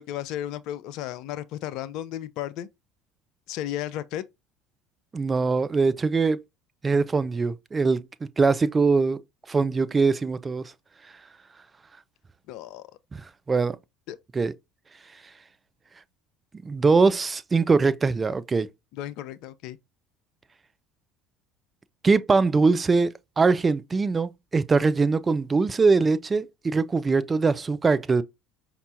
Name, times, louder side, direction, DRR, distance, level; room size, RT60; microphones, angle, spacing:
voice 1, 0.0-2.7 3.5-4.2 12.5-12.9 14.1-14.2 18.9-19.8, left 12 dB, 60° left, 0.4 m, -34 dB
voice 2, 5.1-6.4 6.8-8.0 8.4-9.2 9.5-10.7 13.1-13.8 14.3-14.5 16.6-18.7 22.0-28.2, right 4 dB, 25° right, 0.4 m, -22 dB
5.3 x 2.9 x 2.5 m
hypercardioid pair, 70°, 0 cm